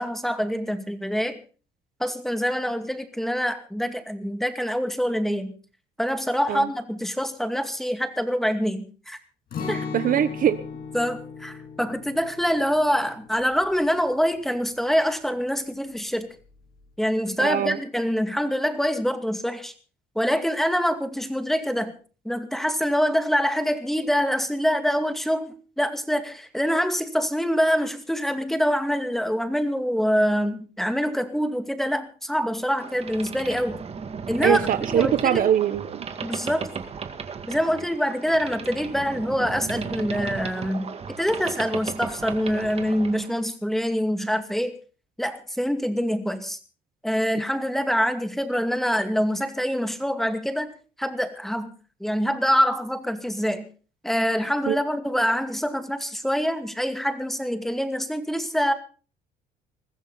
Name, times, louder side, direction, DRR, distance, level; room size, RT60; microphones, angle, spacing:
voice 1, 0.0-1.4 2.0-5.5 6.0-9.2 9.7-9.9 10.9-16.4 17.0-19.7 20.2-21.9 22.2-33.8 34.3-34.6 34.9-35.4 36.2-36.7 37.5-40.9 41.2-44.7 45.2-46.6 47.0-51.7 52.0-53.7 54.0-58.7, equal, ahead, 8 dB, 2.3 m, -25 dB
Acoustic guitar, 9.5-15.4 15.7-15.9 16.4-16.8, left 5 dB, 60° left, 6.9 m, -38 dB
voice 2, 9.7-10.6 17.4-17.8 34.4-36.0 54.7-54.8, right 10 dB, 55° right, 13 dB, 1.2 m, -22 dB
Boat Water vehicle, 32.8-43.3, right 6 dB, 35° right, 2.1 m, -35 dB
21.0 x 15.0 x 4.1 m, 0.38 s
cardioid pair, 110°, 17 cm